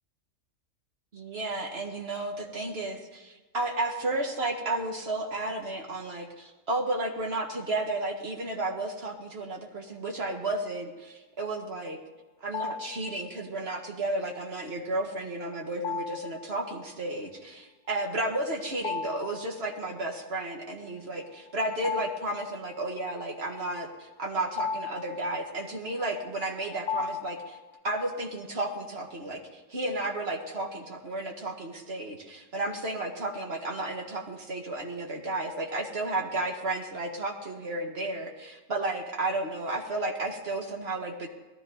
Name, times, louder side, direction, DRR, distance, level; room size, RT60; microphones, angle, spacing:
voice 1, 1.1-12.0 12.4-27.6 27.8-41.3, right 2 dB, 50° right, 2 dB, 2.0 m, -33 dB
sound 1, 12.5-13.2 15.8-16.5 18.7-19.5 19.8-19.9 21.4-22.9 23.9-27.8, left 6 dB, 75° left, 1.0 m, -36 dB
18.0 x 13.0 x 4.0 m, 1.2 s
omnidirectional pair, 1.3 m